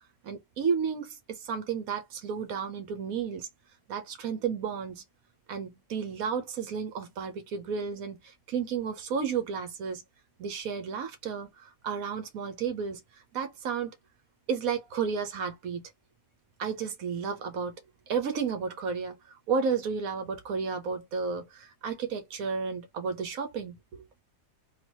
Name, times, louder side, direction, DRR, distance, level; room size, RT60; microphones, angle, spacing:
voice 1, 0.2-3.5 3.9-5.0 5.5-10.0 10.4-13.0 13.3-13.9 14.5-15.8 16.6-17.7 18.1-24.2, right 6 dB, 75° right, 1.2 m, -32 dB
3.8 x 2.3 x 2.9 m
omnidirectional pair, 1.5 m